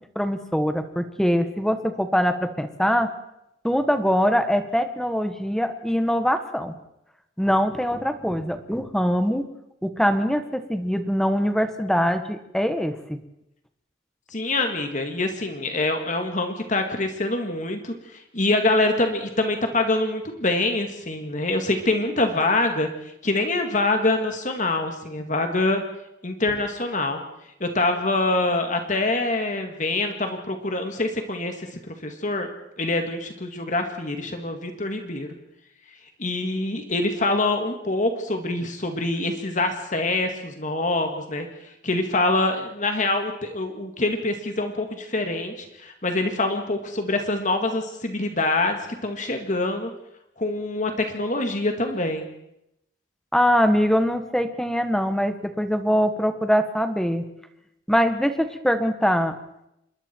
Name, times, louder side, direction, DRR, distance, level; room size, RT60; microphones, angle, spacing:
voice 1, 0.1-3.1 3.6-6.7 7.4-9.5 9.8-13.2 53.3-57.3 57.9-59.3, equal, 5° left, 8 dB, 1.4 m, -23 dB
voice 2, 14.3-22.9 23.2-25.8 26.2-27.2 27.6-32.5 32.8-35.3 36.2-49.9 50.4-52.3, left 2 dB, 40° left, 5 dB, 2.1 m, -25 dB
27.0 x 22.0 x 4.6 m, 0.81 s
head